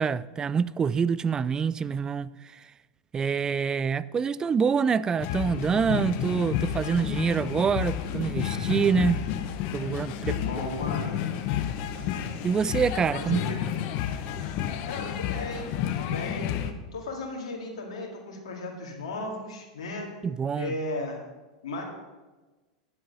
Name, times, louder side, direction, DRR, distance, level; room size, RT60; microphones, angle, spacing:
voice 1, 0.0-2.6 3.1-9.3 9.7-10.3 12.4-13.5 20.2-20.8, right 6 dB, 20° right, 0.3 m, -26 dB
sound 1, 5.2-16.7, left 10 dB, 50° left, 0.8 m, -31 dB
voice 2, 10.3-11.2 13.1-13.6 14.9-16.5 16.9-20.1 20.6-21.2 21.6-21.8, left 2 dB, 70° left, 2.2 m, -35 dB
9.8 x 7.5 x 5.4 m
hypercardioid pair, 90°, 3 cm